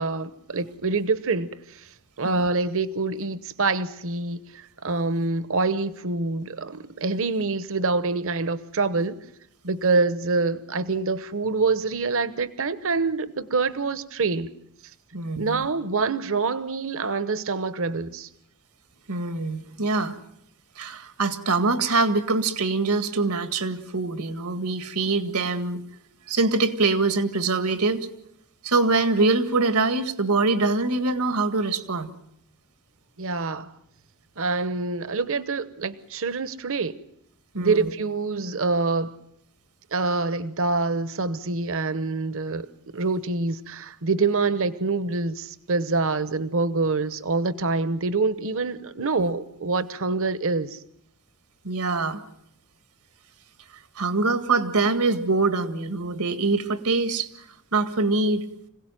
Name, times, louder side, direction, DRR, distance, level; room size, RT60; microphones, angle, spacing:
voice 1, 0.0-1.9 2.2-9.2 9.6-14.5 15.4-18.3 33.2-33.7 34.4-36.9 37.6-39.2 39.9-42.7 42.9-50.8, right 3 dB, 65° right, 1.1 m, -26 dB
voice 2, 15.1-15.7 19.1-20.2 20.8-25.8 26.3-28.1 28.6-32.1 37.5-37.9 49.0-49.3 51.6-52.2 54.0-57.3 57.7-58.4, right 3 dB, 85° right, 1.9 m, -24 dB
26.0 x 17.5 x 9.2 m
head